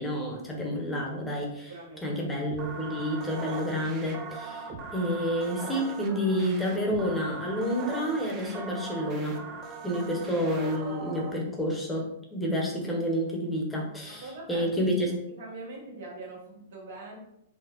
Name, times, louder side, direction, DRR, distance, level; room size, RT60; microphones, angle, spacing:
voice 1, 0.0-1.7 2.0-9.4 9.8-15.1, equal, 10° left, -1 dB, 1.1 m, -29 dB
voice 2, 1.7-2.2 14.1-14.7 15.4-17.2, right 2 dB, 65° right, -3 dB, 1.5 m, -42 dB
sound 1, 2.5-11.3, right 4 dB, 35° right, 0.6 m, -40 dB
4.2 x 2.4 x 3.0 m, 0.81 s
hypercardioid pair, 110°, 0 cm